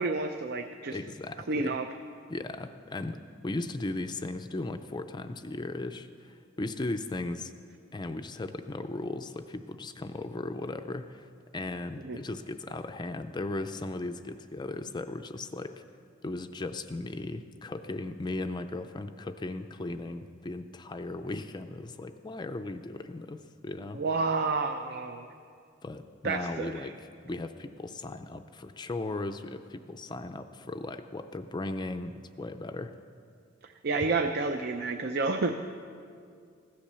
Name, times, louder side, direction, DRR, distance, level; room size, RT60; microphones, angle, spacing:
voice 1, 0.0-1.0 1.5-1.9 12.0-12.2 23.9-25.3 26.2-26.9 33.6-35.5, right 3 dB, 55° right, 6 dB, 0.5 m, -30 dB
voice 2, 0.9-1.8 2.3-7.5 7.9-15.8 16.2-24.0 25.8-32.9, left 2 dB, 20° left, 8 dB, 0.4 m, -37 dB
15.5 x 10.0 x 6.8 m, 2.3 s
head